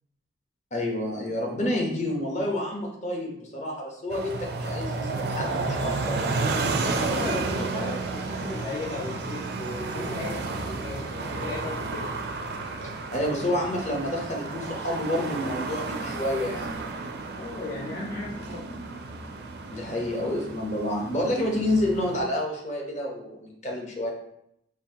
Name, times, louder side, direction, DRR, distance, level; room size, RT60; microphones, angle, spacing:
voice 1, 0.7-6.4 13.1-16.7 19.7-24.1, left 1 dB, 40° left, 0 dB, 0.9 m, -29 dB
sound 1, 4.1-22.2, right 3 dB, 55° right, 0.4 m, -32 dB
voice 2, 7.0-12.1 17.4-18.6, left 3 dB, 90° left, -12 dB, 1.5 m, -36 dB
5.4 x 2.5 x 2.8 m, 0.75 s
head